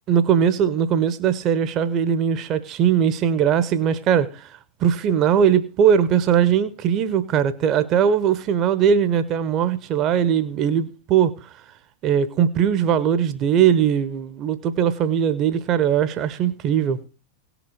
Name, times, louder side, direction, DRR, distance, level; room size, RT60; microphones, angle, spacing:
voice 1, 0.1-4.5 4.8-11.3 12.0-17.0, right 8 dB, 35° right, 1.1 m, -20 dB
17.5 x 6.1 x 6.5 m
figure-of-eight pair, 90°, 0 cm